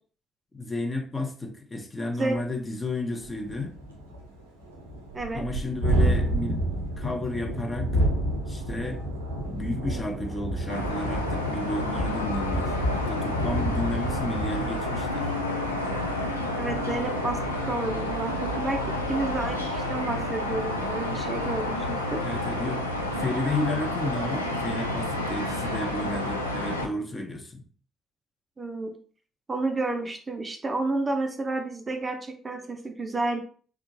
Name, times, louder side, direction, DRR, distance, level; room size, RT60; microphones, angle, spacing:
voice 1, 0.5-3.8 5.3-6.6 7.0-7.9 8.5-9.0 9.4-15.3 22.2-22.8 23.2-27.6, left 2 dB, 20° left, 0.7 m, -32 dB
Thunderstorm, 2.4-2.5 2.8-2.9 3.2-16.8, right 1 dB, 75° right, 0.6 m, -30 dB
sound 1, 10.7-26.9, left 1 dB, 90° left, 0.3 m, -30 dB
voice 2, 16.6-17.4 17.7-22.2 28.6-28.9 29.5-33.4, right 2 dB, 25° right, 0.5 m, -30 dB
3.5 x 2.4 x 2.8 m
figure-of-eight pair, 45°, 0 cm